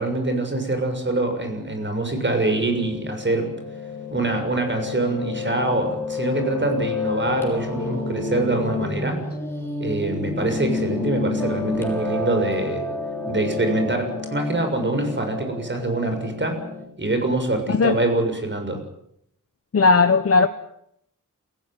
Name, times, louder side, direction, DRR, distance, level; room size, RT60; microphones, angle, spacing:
voice 1, 0.0-3.5 4.1-9.2 9.8-12.8 13.3-16.6 17.0-18.8, right 2 dB, 35° right, 6 dB, 6.8 m, -24 dB
Piano, 2.4-16.8, left 3 dB, 5° left, 6.8 m, -29 dB
voice 2, 19.7-20.5, left 4 dB, 45° left, 9 dB, 1.1 m, -16 dB
29.0 x 16.0 x 9.1 m, 0.74 s
wide cardioid pair, 115°, 32 cm